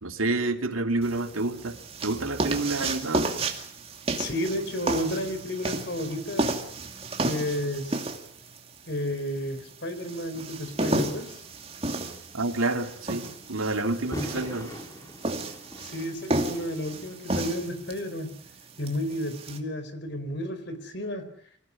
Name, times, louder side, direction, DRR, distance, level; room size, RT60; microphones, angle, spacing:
voice 1, 0.0-3.3 12.3-14.8, right 2 dB, 85° right, 6 dB, 2.6 m, -29 dB
sound 1, 1.0-19.6, right 2 dB, 30° right, 2.4 m, -32 dB
voice 2, 4.2-6.6 7.2-8.1 8.9-11.3 15.8-18.3 18.8-21.3, left 1 dB, 55° left, 10 dB, 4.3 m, -32 dB
sound 2, 10.6-18.4 18.7-18.8, equal, 15° left, 4.7 m, -45 dB
25.5 x 17.0 x 9.8 m, 0.62 s
head